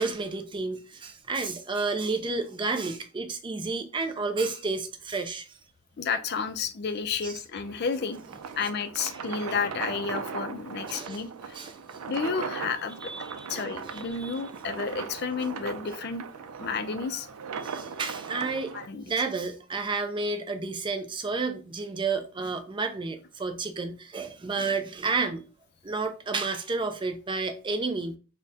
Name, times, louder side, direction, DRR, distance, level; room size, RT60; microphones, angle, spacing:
voice 1, 0.0-5.5 7.2-7.3 9.1-9.2 10.9-11.2 11.5-12.0 13.0-14.4 17.5-25.4 25.8-28.2, right 3 dB, 20° right, 0.4 m, -31 dB
voice 2, 6.0-8.2 8.6-11.6 12.1-13.1 13.5-16.2 16.6-17.3 18.7-19.0, left 5 dB, 50° left, 0.4 m, -31 dB
sound 1, 7.6-18.9, right 6 dB, 90° right, 0.4 m, -38 dB
4.0 x 2.1 x 3.4 m
head